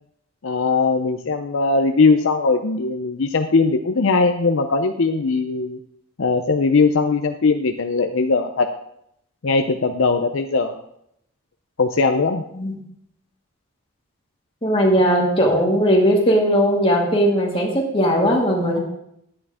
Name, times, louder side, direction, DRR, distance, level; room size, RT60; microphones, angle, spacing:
voice 1, 0.4-5.8 6.2-8.7 9.4-10.8 11.8-12.4, left 4 dB, 65° left, 6 dB, 0.6 m, -19 dB
voice 2, 14.6-18.8, equal, 25° left, -1 dB, 1.9 m, -18 dB
11.0 x 8.8 x 3.6 m, 0.75 s
head